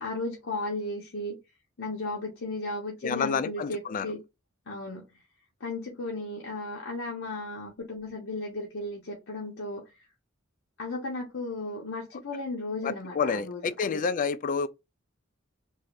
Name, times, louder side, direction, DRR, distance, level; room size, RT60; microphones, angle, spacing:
voice 1, 0.0-1.4 1.8-4.2 4.7-5.1 5.6-9.9 10.8-14.0, left 2 dB, 65° left, 0.8 m, -35 dB
voice 2, 3.0-4.1 12.8-14.7, left 5 dB, 40° left, 0.3 m, -29 dB
3.2 x 2.7 x 2.4 m
head